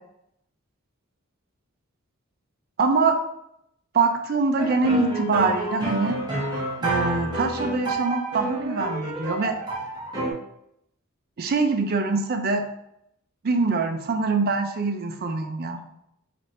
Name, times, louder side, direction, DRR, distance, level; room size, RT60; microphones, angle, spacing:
voice 1, 2.8-3.2 3.9-6.2 6.8-9.6 11.4-12.7 13.4-15.8, right 4 dB, 45° right, 6 dB, 0.4 m, -24 dB
sound 1, 4.6-10.3, right 1 dB, 20° right, 0.8 m, -29 dB
4.2 x 2.5 x 3.2 m, 0.78 s
head